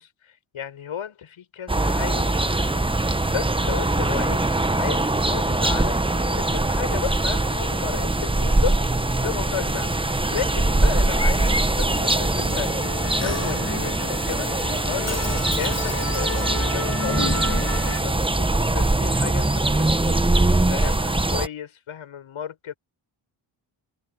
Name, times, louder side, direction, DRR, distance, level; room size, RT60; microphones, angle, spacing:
voice 1, 0.0-2.9 3.3-4.4 4.8-8.8 9.2-9.9 10.3-11.5 11.8-12.7 13.0-14.5 14.9-20.2 20.7-22.8, left 8 dB, 75° left, 7.6 m, -34 dB
sound 1, 1.7-21.5, right 2 dB, 10° right, 1.2 m, -22 dB
Musical instrument, 6.8-18.0, left 3 dB, 30° left, 4.8 m, -34 dB
cardioid pair, 70°, 49 cm